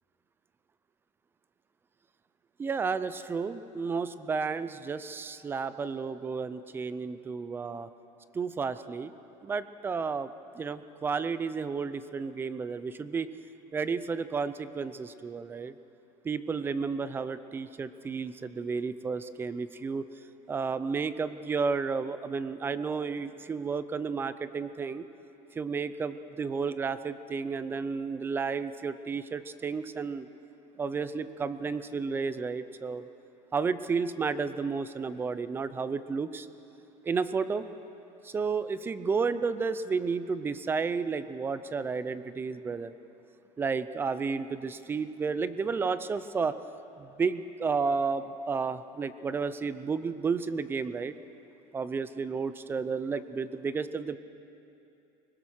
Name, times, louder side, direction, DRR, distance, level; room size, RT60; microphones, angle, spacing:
voice 1, 2.6-7.9 8.3-9.1 9.4-10.3 10.6-13.3 13.7-15.7 16.2-20.0 20.5-25.0 25.5-30.3 30.8-33.1 33.5-36.5 37.0-37.7 38.2-42.9 43.6-46.6 47.0-51.1 51.7-54.2, right 5 dB, 15° right, 14 dB, 0.5 m, -32 dB
23.5 x 20.5 x 6.4 m, 2.8 s
cardioid pair, 170°, 15 cm